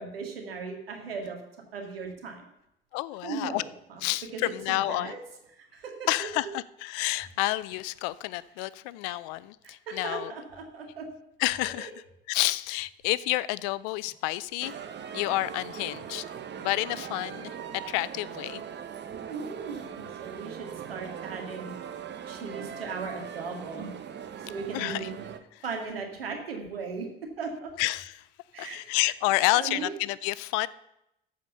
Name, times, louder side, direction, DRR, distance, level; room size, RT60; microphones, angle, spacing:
voice 1, 0.0-1.4 1.7-2.4 3.2-3.6 3.9-4.0 4.3-5.2 5.5-6.3 9.1-9.2 9.6-11.1 11.7-11.9 19.3-21.7 22.3-23.9 24.4-25.1 25.6-27.1 27.4-27.7 28.5-29.1 29.5-29.9, right 5 dB, 85° right, 2.1 m, -37 dB
voice 2, 2.9-3.6 4.0-5.1 6.1-10.3 11.4-11.9 12.3-14.8 15.1-16.2 16.6-17.5 17.9-18.6 24.7-25.1 27.8-28.2 28.6-30.7, left 18 dB, 65° left, 0.5 m, -29 dB
sound 1, 14.6-25.4, right 8 dB, 35° right, 1.2 m, -40 dB
14.0 x 5.1 x 6.8 m
hypercardioid pair, 65°, 29 cm